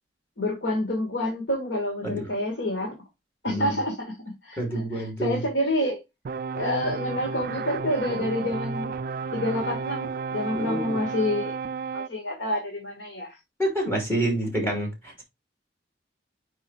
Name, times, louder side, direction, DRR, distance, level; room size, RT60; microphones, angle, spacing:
voice 1, 0.4-2.9 3.4-6.0 6.5-8.9 9.3-11.6 11.9-13.4, left 1 dB, 90° left, 1.6 m, -28 dB
voice 2, 3.5-3.8 4.6-5.4 10.5-11.0 13.6-15.2, right 1 dB, 15° left, 2.9 m, -28 dB
sound 1, 6.2-12.1, right 5 dB, 50° right, 0.3 m, -32 dB
5.4 x 4.8 x 4.3 m
head